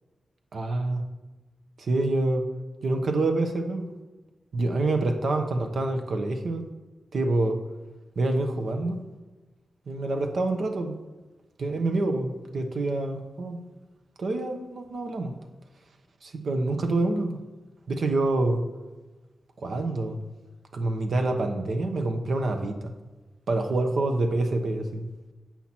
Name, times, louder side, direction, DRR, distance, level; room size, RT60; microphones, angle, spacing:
voice 1, 0.5-1.0 1.8-2.4 2.8-3.9 4.5-6.6 7.1-7.6 8.2-9.0 9.9-11.0 11.6-13.6 14.2-15.3 16.2-17.4 17.9-18.6 19.6-20.2 20.7-22.9 23.5-25.1, right 2 dB, 70° right, 5 dB, 0.9 m, -26 dB
7.4 x 5.8 x 4.3 m, 1.2 s
cardioid pair, 65°, 0 cm